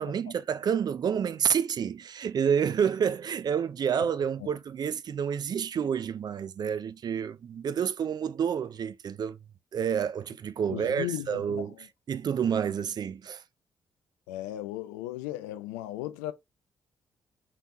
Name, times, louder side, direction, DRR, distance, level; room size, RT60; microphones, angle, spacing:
voice 1, 0.0-9.4 9.7-13.4, right 7 dB, 45° right, 0.4 m, -29 dB
voice 2, 10.7-11.6 14.3-16.3, left 14 dB, 80° left, 0.4 m, -36 dB
3.4 x 2.9 x 2.6 m
hypercardioid pair, 40°, 9 cm